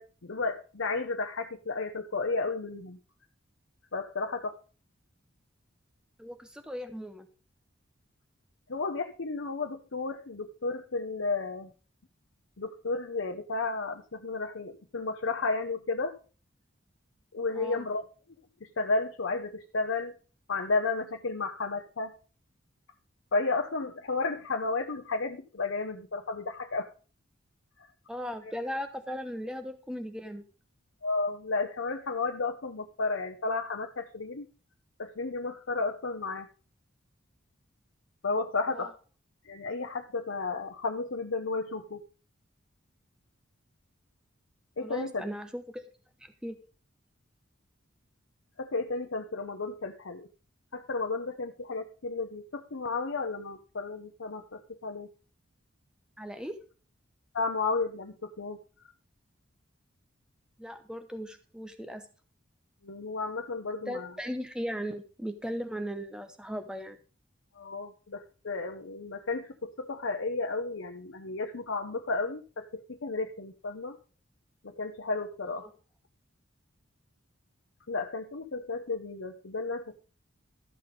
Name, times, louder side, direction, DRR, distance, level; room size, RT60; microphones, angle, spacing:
voice 1, 0.0-3.0 3.9-4.6 8.7-11.7 12.6-16.1 17.3-18.0 18.6-20.1 20.5-22.1 23.3-26.9 27.8-27.9 31.0-34.5 35.0-36.5 38.2-38.9 39.4-42.0 44.8-45.2 48.6-50.3 50.7-55.1 57.3-58.6 62.8-64.1 67.6-74.0 74.6-75.7 77.9-80.0, left 3 dB, 75° left, 5 dB, 0.8 m, -33 dB
voice 2, 6.2-7.3 17.5-17.9 28.1-30.4 38.7-38.9 44.8-45.8 46.2-46.6 56.2-56.6 60.6-62.1 63.9-67.0 75.6-75.7, equal, 5° right, 8 dB, 0.8 m, -37 dB
13.0 x 5.9 x 5.1 m, 0.38 s
head